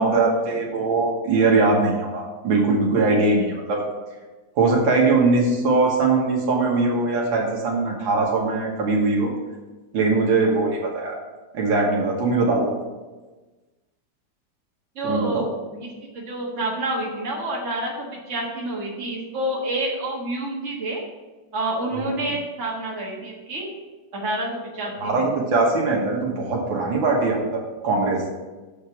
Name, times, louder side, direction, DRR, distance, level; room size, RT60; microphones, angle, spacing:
voice 1, 0.0-3.8 4.6-9.3 9.9-11.1 11.5-12.7 15.0-15.5 25.0-28.2, right 3 dB, 85° right, -1 dB, 2.1 m, -21 dB
voice 2, 15.0-21.0 21.5-23.7 24.1-25.3, right 1 dB, 40° right, -2 dB, 1.8 m, -28 dB
7.2 x 5.2 x 5.9 m, 1.2 s
omnidirectional pair, 2.0 m